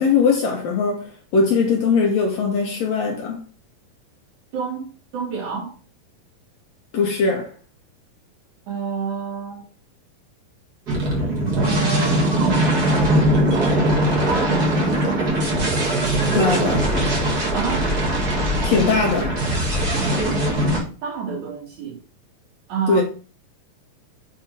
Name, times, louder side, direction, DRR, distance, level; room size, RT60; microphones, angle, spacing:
voice 1, 0.0-3.4 6.9-7.5 16.3-16.9 18.6-19.4 22.9-23.0, left 4 dB, 65° left, 1.8 m, -20 dB
voice 2, 4.5-5.7 8.7-9.6 11.5-15.2 17.5-17.9 20.1-22.0 22.7-23.0, right 5 dB, 65° right, 3.4 m, -29 dB
sound 1, 10.9-20.8, right 1 dB, 35° right, 1.8 m, -20 dB
6.9 x 3.6 x 4.5 m
omnidirectional pair, 3.8 m